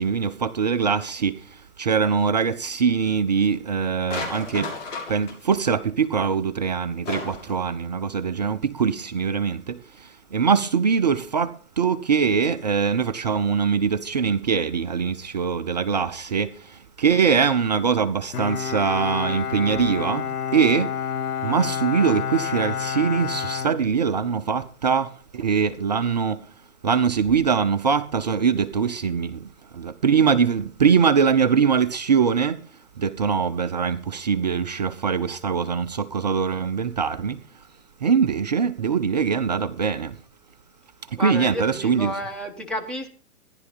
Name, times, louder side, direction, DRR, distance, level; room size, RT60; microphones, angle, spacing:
voice 1, 0.0-1.3 1.8-4.7 5.1-9.8 10.3-16.5 17.0-20.3 20.5-20.9 21.4-25.1 25.3-26.4 26.8-29.4 29.8-32.6 33.0-37.4 38.0-40.1 41.2-42.2, right 6 dB, 30° right, 0.5 m, -22 dB
sound 1, 4.1-5.5 7.1-7.5, left 4 dB, 55° left, 7.4 m, -33 dB
Bowed string instrument, 18.3-24.5, left 8 dB, 75° left, 0.8 m, -29 dB
voice 2, 41.2-43.1, left 1 dB, ahead, 1.3 m, -31 dB
14.5 x 10.5 x 4.0 m
figure-of-eight pair, 125°, 45 cm